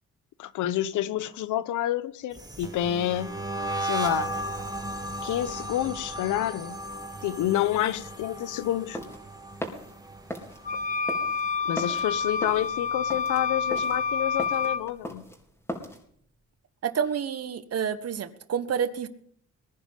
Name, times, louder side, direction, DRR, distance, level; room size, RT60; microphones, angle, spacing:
voice 1, 0.4-3.3 3.8-4.3 5.2-6.8 7.2-9.0 11.6-15.2, left 12 dB, 80° left, 1.0 m, -28 dB
sound 1, 2.3-11.5 11.8-12.2 12.5-14.1, right 1 dB, 15° right, 2.3 m, -36 dB
sound 2, 8.9-16.0, equal, 10° left, 4.3 m, -39 dB
sound 3, 10.6-14.8, left 5 dB, 25° left, 1.3 m, -28 dB
voice 2, 16.8-19.1, right 7 dB, 55° right, 1.5 m, -29 dB
21.0 x 10.5 x 5.6 m
cardioid pair, 90°, 30 cm